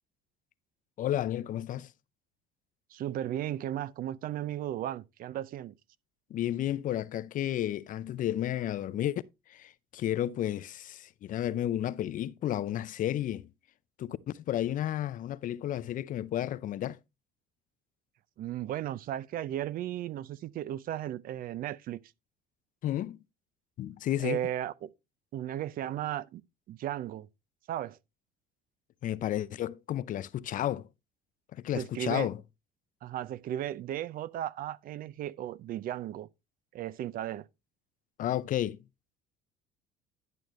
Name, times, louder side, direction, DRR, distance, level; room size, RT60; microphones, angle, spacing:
voice 1, 1.0-1.9 6.3-9.2 9.5-13.5 14.0-17.0 22.8-23.2 23.8-24.4 29.0-30.9 31.5-32.4 38.2-38.8, left 12 dB, 50° left, 0.5 m, -32 dB
voice 2, 2.9-5.8 18.4-22.0 24.2-24.9 25.3-26.4 26.7-27.3 27.7-28.0 31.7-32.3 33.0-36.3 36.7-37.5, right 12 dB, 55° right, 0.5 m, -35 dB
11.0 x 6.4 x 3.1 m
supercardioid pair, 100°, 18 cm